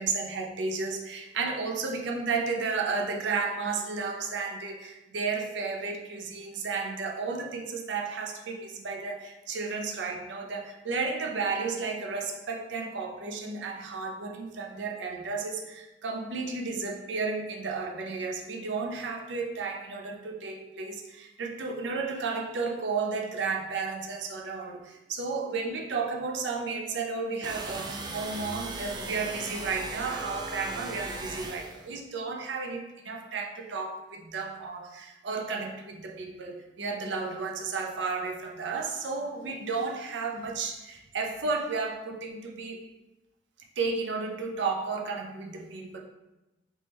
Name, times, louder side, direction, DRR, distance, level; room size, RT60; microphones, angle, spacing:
voice 1, 0.0-42.8 43.8-46.0, right 4 dB, 80° right, 1 dB, 0.5 m, -33 dB
sound 1, 27.4-31.8, right 3 dB, 25° right, 0.3 m, -38 dB
3.5 x 3.1 x 2.9 m, 1.0 s
head